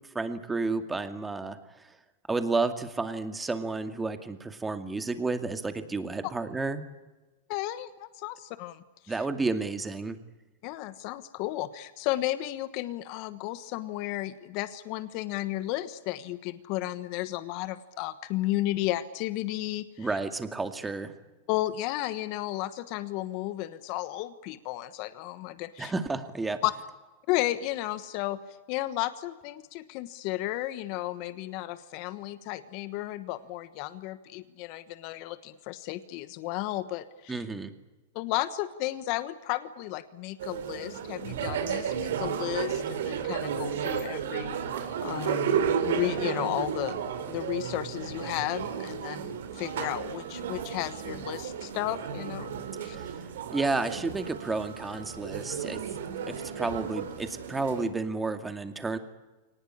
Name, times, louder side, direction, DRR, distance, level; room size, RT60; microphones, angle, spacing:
voice 1, 0.1-1.6 2.3-6.8 9.1-10.2 20.0-21.1 25.8-26.6 37.3-37.7 52.8-53.1 53.5-55.8 56.3-59.0, right 3 dB, 10° right, 8 dB, 2.2 m, -31 dB
voice 2, 7.5-9.2 10.6-20.2 21.5-25.9 26.6-26.7 27.3-28.4 28.7-37.4 38.1-52.5 52.8-53.0, left 16 dB, 50° left, 13 dB, 1.3 m, -33 dB
sound 1, 40.4-57.9, right 7 dB, 80° right, 3.8 m, -33 dB
23.5 x 19.0 x 10.0 m, 1.2 s
supercardioid pair, 130°, 0 cm